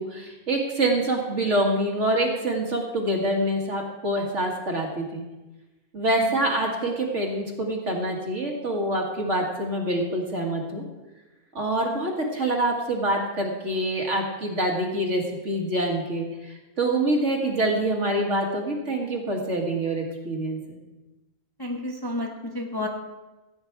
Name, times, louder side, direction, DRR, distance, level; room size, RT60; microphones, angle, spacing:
voice 1, 0.0-5.2 5.9-10.8 11.5-20.8, right 1 dB, 55° right, 0 dB, 2.2 m, -26 dB
voice 2, 21.6-22.9, left 1 dB, 15° left, 0 dB, 1.0 m, -30 dB
15.5 x 8.8 x 4.7 m, 1.1 s
omnidirectional pair, 1.5 m